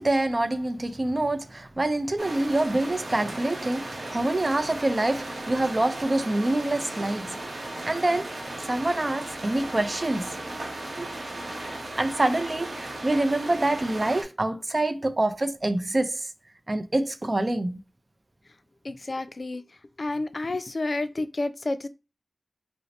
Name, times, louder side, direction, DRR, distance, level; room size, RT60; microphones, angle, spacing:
voice 1, 0.0-7.4 7.9-8.3 8.7-10.4 11.0-11.1 11.6-16.3 16.7-17.8, right 2 dB, 40° right, 0.4 m, -26 dB
sound 1, 2.2-14.2, right 2 dB, 85° right, 0.8 m, -36 dB
voice 2, 18.9-19.6 20.0-21.9, left 2 dB, 55° left, 0.3 m, -30 dB
2.7 x 2.1 x 4.0 m
wide cardioid pair, 60°, 0 cm